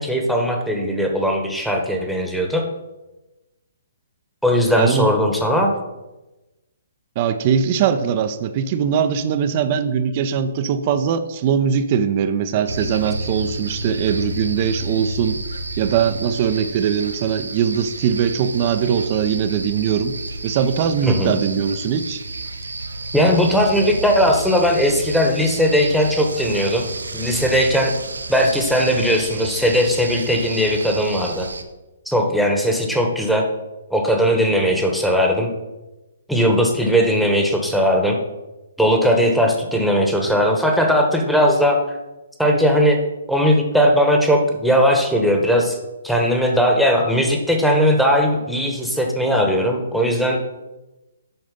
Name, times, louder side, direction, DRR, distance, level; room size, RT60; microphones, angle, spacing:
voice 1, 0.0-2.6 4.4-5.7 21.1-21.4 23.1-26.9 27.1-27.9 28.3-31.5 32.1-33.4 33.9-35.5 36.3-38.2 38.8-42.0 42.4-43.0 43.3-45.8 46.0-50.4, equal, ahead, 1 dB, 1.2 m, -18 dB
voice 2, 4.8-5.1 7.2-15.4 15.8-20.2 20.4-22.2, right 7 dB, 40° right, 10 dB, 0.6 m, -21 dB
sound 1, 12.7-31.6, right 2 dB, 80° right, 0.8 m, -31 dB
7.9 x 5.1 x 5.3 m, 1.0 s
figure-of-eight pair, 130°, 0 cm